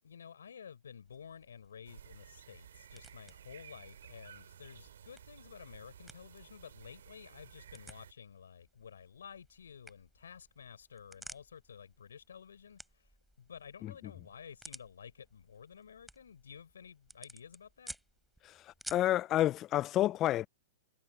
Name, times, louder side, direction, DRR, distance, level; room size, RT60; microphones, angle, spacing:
voice 1, 0.0-13.1 13.4-17.9, left 7 dB, 85° left, 5.1 m, -52 dB
sound 1, 1.0-19.2, right 1 dB, ahead, 7.4 m, -56 dB
sound 2, 1.8-8.1, right 9 dB, 75° right, 2.7 m, -55 dB
voice 2, 18.9-20.5, left 13 dB, 30° left, 0.5 m, -29 dB
hypercardioid pair, 125°, 0 cm